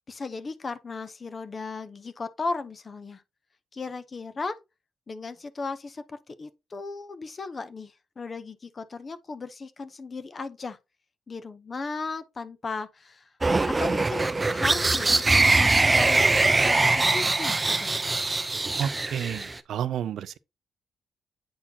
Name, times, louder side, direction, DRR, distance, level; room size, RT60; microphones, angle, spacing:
voice 1, 0.1-3.2 3.7-4.5 5.1-10.8 11.3-13.3 13.8-17.9, left 4 dB, 35° left, 0.7 m, -36 dB
sound 1, 13.4-19.6, right 3 dB, 20° right, 0.5 m, -22 dB
voice 2, 18.8-20.4, right 9 dB, 75° right, 0.4 m, -31 dB
8.6 x 4.2 x 2.8 m
cardioid pair, 100°, 0 cm